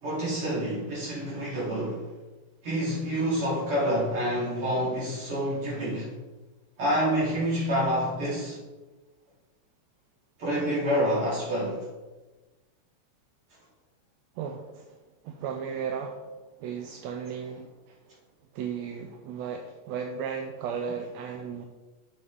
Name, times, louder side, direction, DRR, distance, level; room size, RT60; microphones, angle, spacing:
voice 1, 0.0-2.1 2.6-6.1 6.8-8.6 10.4-11.9, equal, 50° right, 3.9 m, -27 dB
voice 2, 14.4-15.0 15.2-16.3 16.6-18.0 18.5-21.7, right 7 dB, 75° right, 1.8 m, -35 dB
11.0 x 6.9 x 3.5 m
omnidirectional pair, 3.3 m